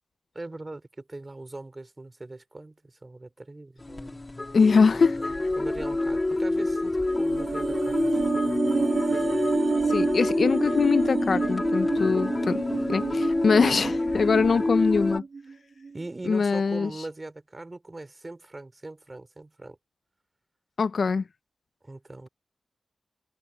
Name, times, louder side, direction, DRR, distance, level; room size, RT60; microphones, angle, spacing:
voice 1, 0.3-4.2 5.6-8.4 13.6-13.8 15.9-19.8 21.8-22.3, right 2 dB, 25° right, 2.8 m, -40 dB
sound 1, 3.8-15.2, left 2 dB, 25° left, 1.9 m, -27 dB
voice 2, 4.5-5.3 9.9-12.6 12.9-15.2 16.2-16.9 20.8-21.2, left 5 dB, 60° left, 0.5 m, -23 dB
sound 2, 7.1-15.5 15.8-16.0, right 4 dB, 60° right, 1.5 m, -29 dB
wide cardioid pair, 115°, 0 cm